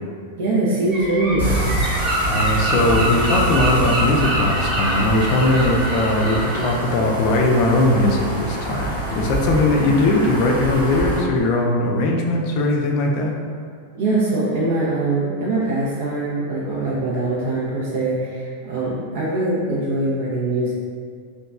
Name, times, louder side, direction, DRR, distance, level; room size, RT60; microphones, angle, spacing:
voice 1, 0.4-1.5 13.9-20.7, right 2 dB, 55° right, -6 dB, 0.5 m, -22 dB
Gull seagull, 0.9-6.7, right 1 dB, 20° right, 0.9 m, -24 dB
sound 1, 1.4-11.2, equal, 75° right, 0.8 m, -27 dB
voice 2, 2.2-13.3, left 2 dB, 45° left, 1 dB, 0.3 m, -19 dB
2.9 x 2.2 x 2.3 m, 2.1 s
figure-of-eight pair, 90°, 0 cm